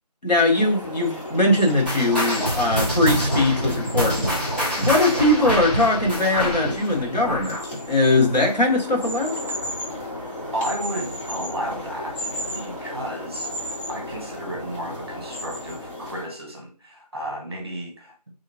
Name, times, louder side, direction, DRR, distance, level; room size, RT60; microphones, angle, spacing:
voice 1, 0.2-4.3 4.8-7.6 7.9-9.4, left 2 dB, 80° left, 1.3 m, -20 dB
sound 1, 0.5-16.3, left 1 dB, 45° left, 1.8 m, -34 dB
sound 2, 1.9-8.7 9.0-9.3 9.9-10.0 10.8-10.9, equal, 15° left, 1.1 m, -26 dB
voice 2, 10.5-18.2, right 1 dB, 35° right, 1.0 m, -33 dB
3.3 x 2.8 x 2.7 m
figure-of-eight pair, 175°, 21 cm